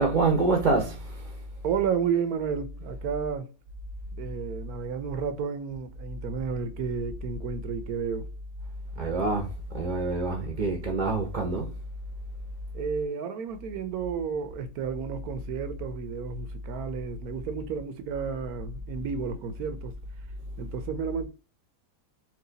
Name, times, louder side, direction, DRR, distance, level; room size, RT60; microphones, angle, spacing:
voice 1, 0.0-1.4 9.0-11.8, right 3 dB, 40° right, 0.7 m, -26 dB
voice 2, 1.6-3.5 4.2-8.3 12.7-19.9 20.6-21.3, right 6 dB, 80° right, 1.2 m, -32 dB
4.7 x 2.6 x 3.9 m
omnidirectional pair, 1.6 m